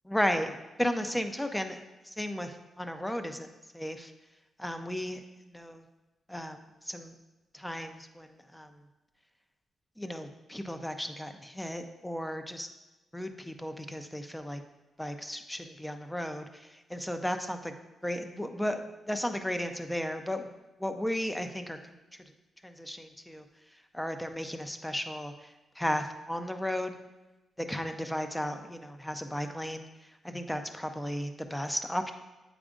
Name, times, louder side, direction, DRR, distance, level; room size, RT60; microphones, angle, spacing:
voice 1, 0.1-1.8 2.2-2.5 2.8-3.5 3.7-4.1 4.6-5.2 5.5-5.8 6.3-6.6 6.9-7.1 7.6-8.3 8.5-8.7 10.0-12.7 13.1-14.6 15.0-16.4 16.9-17.7 18.0-18.8 19.1-20.4 20.8-21.8 22.8-23.4 23.9-25.3 25.8-26.9 27.7-29.8 30.2-32.1, equal, 5° left, 7 dB, 0.5 m, -34 dB
8.6 x 4.9 x 2.5 m, 1.1 s
cardioid pair, 90°, 0 cm